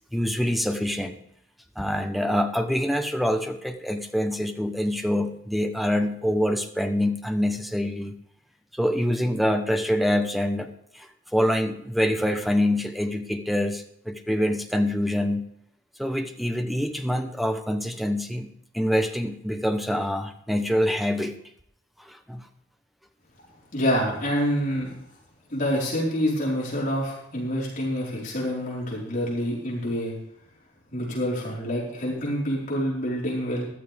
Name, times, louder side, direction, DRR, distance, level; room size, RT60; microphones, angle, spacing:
voice 1, 0.1-1.1 1.8-8.2 8.7-15.4 16.0-21.4 22.0-22.4, equal, ahead, 6 dB, 1.0 m, -25 dB
voice 2, 23.7-24.9 25.5-30.1 30.9-33.7, equal, 45° left, -5 dB, 4.7 m, -27 dB
14.5 x 12.0 x 3.6 m, 0.74 s
head